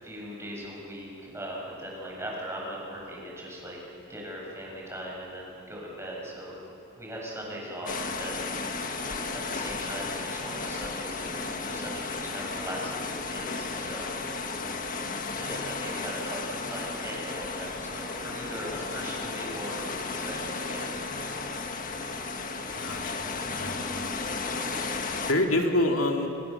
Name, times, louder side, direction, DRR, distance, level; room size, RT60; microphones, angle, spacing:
voice 1, 0.0-3.8 4.1-6.5 6.9-8.9 9.3-14.2 15.3-19.8 20.1-20.9, equal, 15° right, -3 dB, 7.1 m, -39 dB
sound 1, 7.9-25.3, left 4 dB, 40° left, 1.6 m, -34 dB
voice 2, 22.8-24.2 25.3-26.3, left 1 dB, 75° left, 2 dB, 2.5 m, -27 dB
28.0 x 27.5 x 7.0 m, 2.8 s
head